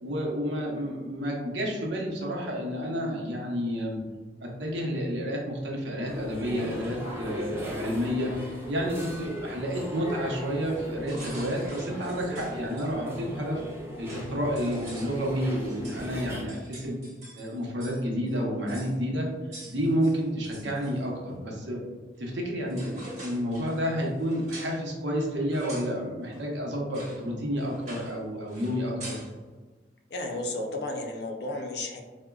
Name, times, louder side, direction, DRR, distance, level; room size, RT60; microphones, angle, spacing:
voice 1, 0.0-4.0 4.4-8.3 8.7-13.6 14.0-17.0 17.3-19.3 19.7-21.8 22.2-29.2, equal, 75° right, -2 dB, 0.8 m, -30 dB
sound 1, 6.1-16.4, left 1 dB, 15° right, 0.4 m, -38 dB
sound 2, 11.1-12.9 13.7-13.8 14.1-18.0 18.3-18.4 18.7-18.9 19.5-21.0 22.3-22.4 22.7-24.8 25.5-25.9 26.3-26.4 26.9-27.2 27.6-28.2 28.5-29.3, right 1 dB, 40° right, 1.1 m, -45 dB
voice 2, 30.1-32.0, left 2 dB, 60° left, 2 dB, 0.5 m, -33 dB
4.8 x 2.1 x 2.3 m, 1.3 s
head